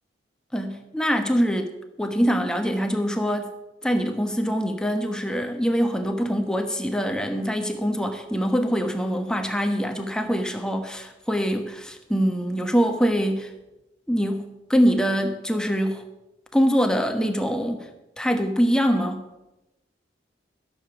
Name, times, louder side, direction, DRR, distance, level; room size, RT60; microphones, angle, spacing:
voice 1, 0.5-1.7 2.0-3.5 3.8-13.5 14.1-16.0 16.5-17.9 18.2-19.2, equal, 5° left, 5 dB, 1.1 m, -24 dB
14.5 x 7.0 x 6.9 m, 0.98 s
head